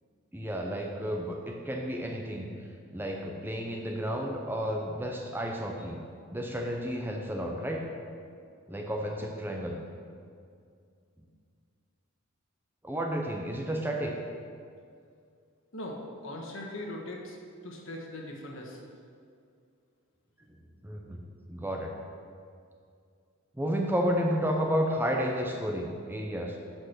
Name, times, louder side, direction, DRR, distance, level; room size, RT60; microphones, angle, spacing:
voice 1, 0.3-2.5 2.9-6.0 6.3-7.8 8.7-9.8 12.8-14.2 20.8-21.2 21.5-21.9 23.6-26.6, equal, 10° right, 1 dB, 0.6 m, -31 dB
voice 2, 15.7-17.4 17.6-18.8, left 1 dB, 65° left, 0 dB, 1.4 m, -40 dB
7.9 x 6.2 x 6.0 m, 2.3 s
head